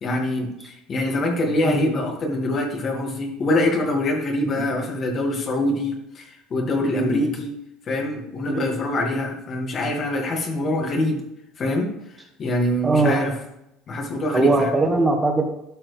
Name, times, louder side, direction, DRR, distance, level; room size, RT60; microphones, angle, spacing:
voice 1, 0.0-7.5 7.9-11.2 11.6-11.9 12.4-13.3 13.9-14.7, left 1 dB, 45° left, 2 dB, 2.2 m, -24 dB
voice 2, 1.6-2.1 4.4-4.6 6.9-7.3 8.5-8.7 12.8-13.3 14.3-15.4, right 2 dB, 20° right, 2 dB, 1.9 m, -21 dB
11.5 x 6.1 x 3.4 m, 0.83 s
supercardioid pair, 95°, 0 cm